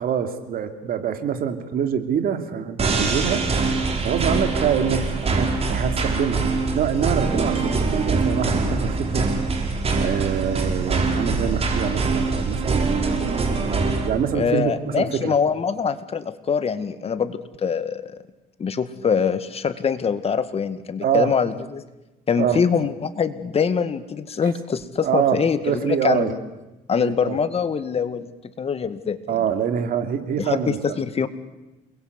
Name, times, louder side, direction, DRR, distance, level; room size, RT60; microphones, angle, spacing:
voice 1, 0.0-3.4 4.0-6.4 6.7-9.3 10.0-13.0 13.8-15.3 21.0-21.3 22.4-22.6 25.0-26.3 27.0-27.4 29.3-31.0, right 8 dB, 60° right, 7 dB, 3.0 m, -25 dB
sound 1, 2.8-14.1, right 3 dB, 35° right, 5.1 m, -23 dB
voice 2, 14.3-18.2 18.6-21.8 22.3-26.4 26.9-28.3 28.6-29.2 30.4-31.3, left 6 dB, 35° left, 11 dB, 2.0 m, -24 dB
29.0 x 21.5 x 8.3 m, 1.0 s
cardioid pair, 110°, 17 cm